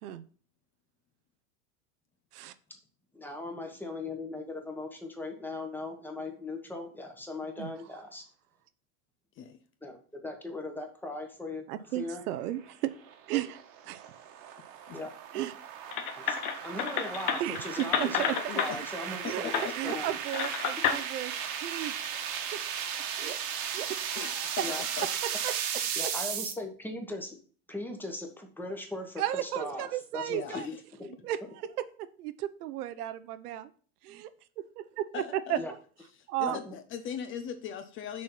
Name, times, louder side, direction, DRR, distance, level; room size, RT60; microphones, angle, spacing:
voice 1, 3.1-8.2 9.8-10.0 10.2-11.6 11.9-12.2 14.9-15.1 16.1-16.4 16.6-20.2 24.6-24.8 26.0-27.4 27.7-29.9 30.1-30.7 31.0-31.1 35.6-35.7 36.5-36.8, left 2 dB, 5° left, 3 dB, 1.1 m, -38 dB
voice 2, 11.7-12.9 13.3-13.6 13.9-14.0 15.3-15.5 17.4-17.6 18.0-18.6 19.2-19.4 19.7-21.3 21.6-22.2 22.5-22.6 23.2-23.4 23.7-24.5 25.4-25.5 29.2-30.7 31.2-31.4 32.2-33.7 34.0-34.3 34.8-35.6 36.3-36.6, right 13 dB, 85° right, 13 dB, 0.8 m, -34 dB
sound 1, 12.6-26.5, right 8 dB, 55° right, 1.4 m, -36 dB
sound 2, 15.9-18.7 19.5-19.7 20.3-21.0, left 8 dB, 80° left, 1.3 m, -30 dB
voice 3, 18.5-18.9 19.2-20.0 24.2-25.1 30.3-30.8 35.1-35.6 36.4-38.2, left 8 dB, 30° left, 9 dB, 0.5 m, -39 dB
6.3 x 4.2 x 5.6 m, 0.43 s
supercardioid pair, 135°, 44 cm